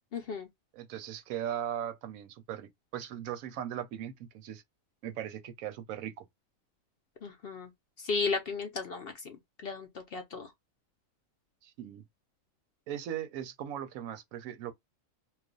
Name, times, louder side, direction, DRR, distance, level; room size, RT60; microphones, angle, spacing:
voice 1, 0.1-0.5 7.2-7.7 8.0-10.5, left 4 dB, 60° left, 0.6 m, -35 dB
voice 2, 0.7-4.6 5.0-6.2 11.6-12.1 12.9-14.7, right 10 dB, 85° right, 1.0 m, -38 dB
2.4 x 2.3 x 3.7 m
omnidirectional pair, 1.4 m